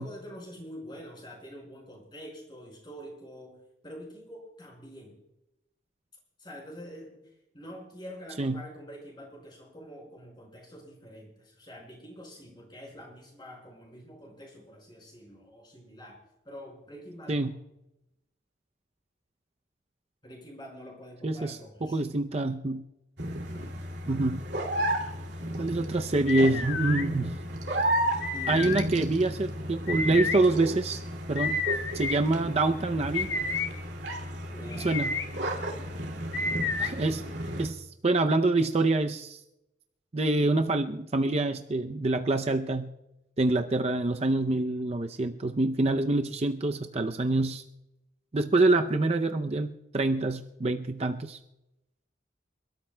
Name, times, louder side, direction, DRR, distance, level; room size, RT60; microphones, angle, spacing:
voice 1, 0.0-5.2 6.4-7.2 7.5-16.2 16.5-17.5 20.2-22.0 23.2-23.6 28.3-28.8 34.4-34.9 35.5-36.0 50.1-50.4, equal, 25° left, 0 dB, 5.1 m, -46 dB
voice 2, 21.2-21.6 21.9-22.8 24.1-24.4 25.6-27.3 28.5-31.0 31.3-31.6 31.9-33.3 34.8-35.1 36.8-37.2 37.6-39.4 40.1-42.9 43.4-47.6 48.3-51.4, right 2 dB, 35° right, 6 dB, 0.5 m, -26 dB
sound 1, 23.2-37.7, right 1 dB, 65° right, 2.4 m, -33 dB
sound 2, 26.3-27.1 28.2-28.8 29.9-30.4 31.4-32.2 33.1-33.7 34.7-35.3 36.3-36.9, left 4 dB, 70° left, 1.3 m, -30 dB
28.5 x 13.0 x 2.2 m, 0.92 s
head